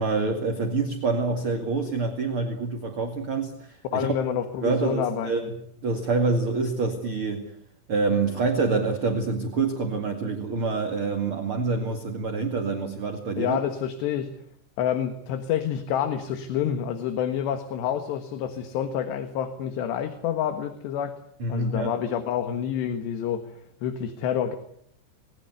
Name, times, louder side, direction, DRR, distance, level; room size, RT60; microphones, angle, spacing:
voice 1, 0.0-4.1 4.6-7.5 7.9-13.6 21.4-22.0, right 4 dB, 40° right, 4 dB, 2.2 m, -26 dB
voice 2, 3.9-5.3 13.4-14.3 14.8-21.2 21.5-23.4 23.8-24.6, left 9 dB, 70° left, 8 dB, 3.5 m, -28 dB
27.0 x 21.0 x 8.0 m, 0.66 s
omnidirectional pair, 5.3 m